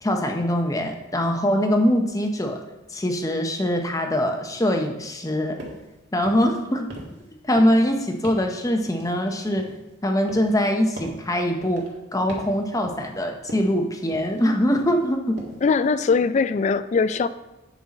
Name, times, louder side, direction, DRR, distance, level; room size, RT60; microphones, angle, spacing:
voice 1, 0.0-2.6 2.9-5.6 6.1-6.9 7.4-9.7 10.0-11.9 12.1-15.4, equal, 15° left, 4 dB, 0.8 m, -23 dB
sound 1, 5.6-5.9 6.2-6.6 6.9-7.3 7.6-7.9 8.2-8.5 8.9-9.9 10.3-10.6 11.0-11.2 11.6-11.9 12.3-12.6 12.8-13.2 13.5-13.8 14.1-14.5 14.7-15.1 15.4-15.7, right 1 dB, 60° right, 1.7 m, -39 dB
voice 2, 15.6-17.3, left 4 dB, 35° left, 14 dB, 0.3 m, -21 dB
8.7 x 5.5 x 4.1 m, 0.99 s
head